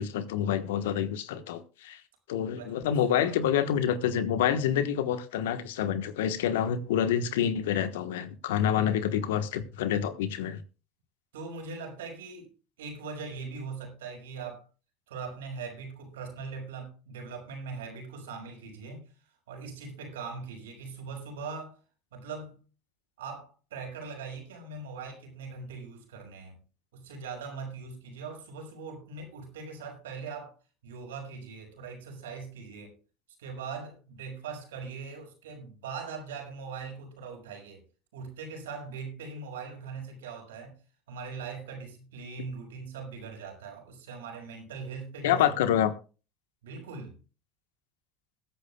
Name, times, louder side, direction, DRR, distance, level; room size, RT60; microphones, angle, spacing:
voice 1, 0.0-2.0 2.3-10.6 45.2-45.9, left 9 dB, 75° left, 1.2 m, -27 dB
voice 2, 11.3-12.5 12.8-14.6 15.1-19.1 19.5-21.8 22.1-22.6 23.2-26.6 26.9-30.5 30.8-33.0 33.4-37.8 38.1-40.8 41.1-45.5 46.6-47.2, right 5 dB, 80° right, 5.6 m, -41 dB
20.5 x 10.5 x 2.3 m
hypercardioid pair, 75°, 0 cm